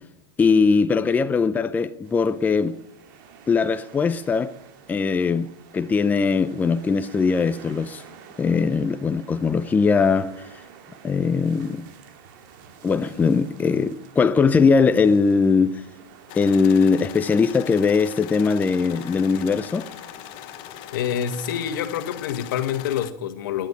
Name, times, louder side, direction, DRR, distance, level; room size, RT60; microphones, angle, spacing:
voice 1, 0.4-2.8 3.5-4.5 4.9-8.0 8.4-10.3 11.0-11.9 12.8-15.8 16.3-19.9, left 5 dB, 15° left, 0.6 m, -20 dB
sound 1, 2.0-21.9, right 7 dB, 65° right, 2.6 m, -49 dB
sound 2, 16.3-23.1, left 16 dB, 50° left, 0.9 m, -40 dB
voice 2, 20.9-23.7, left 9 dB, 75° left, 1.7 m, -27 dB
13.0 x 10.5 x 9.9 m
supercardioid pair, 125°, 11 cm